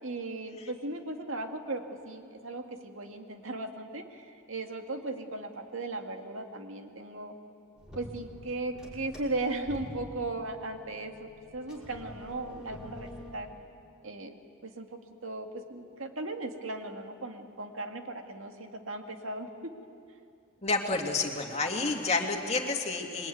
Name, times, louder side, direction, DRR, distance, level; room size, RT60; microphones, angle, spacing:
voice 1, 0.0-7.3 8.0-13.5 14.0-19.7, right 2 dB, 75° right, 4 dB, 2.2 m, -37 dB
sound 1, 7.8-13.3, left 1 dB, 5° right, 5.9 m, -47 dB
voice 2, 20.6-23.3, left 3 dB, 30° left, 2 dB, 2.5 m, -29 dB
27.0 x 22.5 x 9.4 m, 2.5 s
head